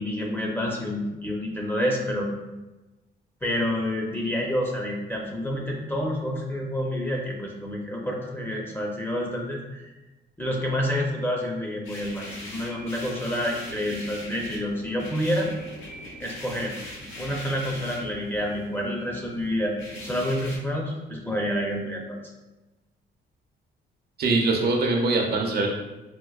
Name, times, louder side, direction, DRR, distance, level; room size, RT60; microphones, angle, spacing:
voice 1, 0.0-2.3 3.4-9.9 10.4-15.5 16.2-16.8 17.2-19.7 20.0-22.2, equal, 10° left, -1 dB, 0.6 m, -28 dB
sound 1, 11.8-20.6, left 1 dB, 85° left, 0.9 m, -41 dB
voice 2, 24.2-25.7, right 3 dB, 55° right, 0 dB, 0.6 m, -22 dB
4.3 x 2.2 x 2.3 m, 1.1 s
cardioid pair, 90°, 20 cm